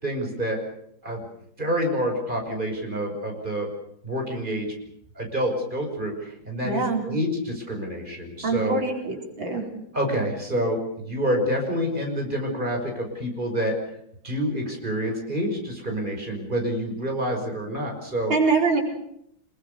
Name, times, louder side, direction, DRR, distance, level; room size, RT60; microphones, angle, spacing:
voice 1, 0.0-0.6 1.0-1.2 1.6-3.7 4.0-4.7 5.2-8.8 9.9-13.8 14.2-18.3, equal, 25° right, 3 dB, 5.9 m, -27 dB
voice 2, 6.6-7.0 8.4-9.6 18.3-18.8, right 4 dB, 90° right, 1 dB, 5.2 m, -24 dB
26.0 x 22.0 x 6.7 m, 0.72 s
omnidirectional pair, 2.1 m